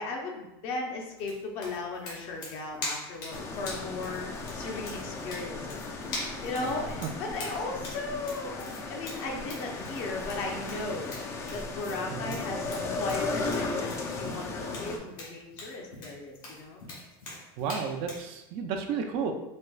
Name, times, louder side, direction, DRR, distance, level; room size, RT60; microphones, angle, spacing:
voice 1, 0.0-4.3 4.5-5.9 6.4-11.1 11.5-16.8, left 3 dB, 55° left, 1 dB, 0.7 m, -36 dB
sound 1, 1.2-18.3, left 2 dB, 70° left, 1.3 m, -42 dB
sound 2, 3.3-15.0, left 3 dB, 20° left, 0.4 m, -36 dB
voice 2, 6.6-7.1 12.1-12.7 17.6-19.3, right 6 dB, 50° right, 4 dB, 0.4 m, -33 dB
4.2 x 2.2 x 2.3 m, 0.95 s
supercardioid pair, 150°, 12 cm